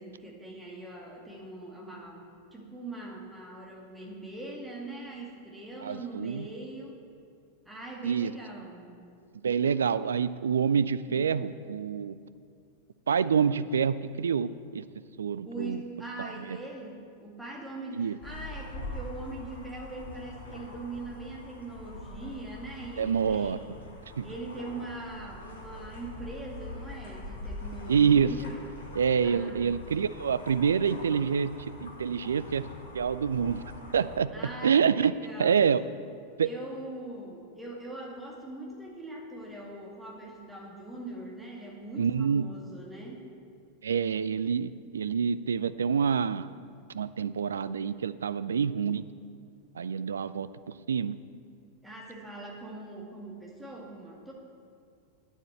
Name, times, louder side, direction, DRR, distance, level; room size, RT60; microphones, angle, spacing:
voice 1, 0.0-7.0 7.7-9.0 11.1-11.4 15.4-23.6 24.2-28.6 29.2-29.7 34.3-35.6 36.4-43.2 51.8-54.3, right 2 dB, 5° right, -2 dB, 2.2 m, -42 dB
voice 2, 5.8-6.5 8.0-8.3 9.4-12.2 13.1-14.8 15.2-15.8 16.2-16.6 17.9-18.2 23.0-23.6 24.2-24.3 27.9-28.3 28.9-31.5 31.8-32.7 32.9-33.6 33.9-34.3 34.6-35.1 35.4-35.8 36.4-36.5 42.0-42.4 43.8-46.5 46.9-49.0 49.8-51.2, right 7 dB, 70° right, 16 dB, 0.3 m, -27 dB
sound 1, 18.2-34.2, left 2 dB, 65° left, 1.8 m, -43 dB
9.2 x 7.2 x 8.0 m, 2.4 s
figure-of-eight pair, 90°, 0 cm